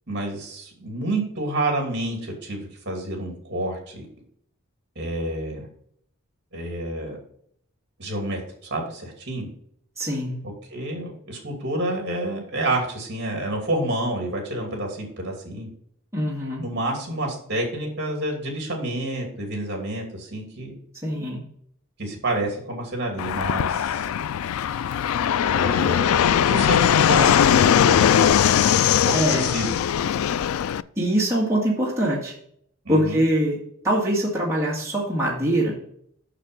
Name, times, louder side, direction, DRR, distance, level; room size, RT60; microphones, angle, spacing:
voice 1, 0.1-4.1 5.0-5.7 6.5-7.2 8.0-8.4 8.7-9.5 10.4-15.7 16.6-20.7 22.0-24.1 25.5-28.3 28.8-29.7 32.8-33.2, right 1 dB, 55° right, 1 dB, 2.7 m, -29 dB
voice 2, 10.0-10.3 16.1-16.6 21.0-21.4 29.1-29.5 31.0-32.3 32.9-35.8, right 1 dB, 15° right, -5 dB, 1.9 m, -23 dB
Fixed-wing aircraft airplane, 23.2-30.8, left 9 dB, 80° left, 0.3 m, -20 dB
6.7 x 6.6 x 5.3 m, 0.65 s
head